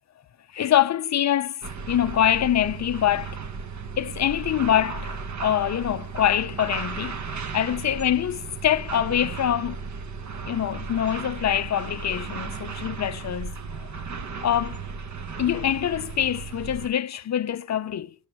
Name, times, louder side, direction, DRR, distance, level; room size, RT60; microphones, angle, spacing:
voice 1, 0.5-3.4 4.0-9.8 10.5-13.9 14.4-14.8 15.4-18.1, left 10 dB, 40° left, 0.5 m, -25 dB
sound 1, 1.6-16.9, right 5 dB, 40° right, 1.0 m, -35 dB
8.9 x 7.1 x 7.8 m
cardioid pair, 135°, 45 cm